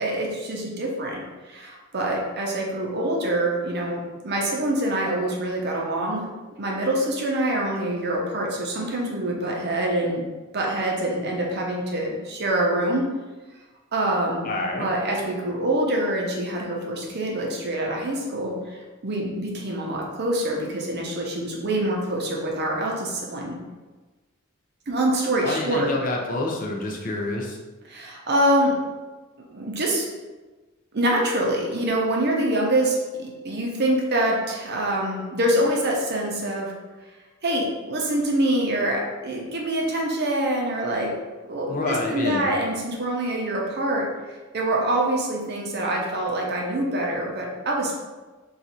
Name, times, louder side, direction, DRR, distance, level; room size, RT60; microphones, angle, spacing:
voice 1, 0.0-6.3 6.6-10.2 10.5-13.1 13.9-14.5 14.8-18.8 19.0-23.6 24.9-25.9 27.8-28.8 29.5-30.1 30.9-36.7 37.4-41.1 41.5-44.1 44.5-48.0, right 1 dB, 50° right, -1 dB, 0.6 m, -25 dB
voice 2, 14.4-14.9 25.4-27.6 41.7-42.5, left 2 dB, 40° left, -1 dB, 0.5 m, -27 dB
2.6 x 2.4 x 4.2 m, 1.3 s
head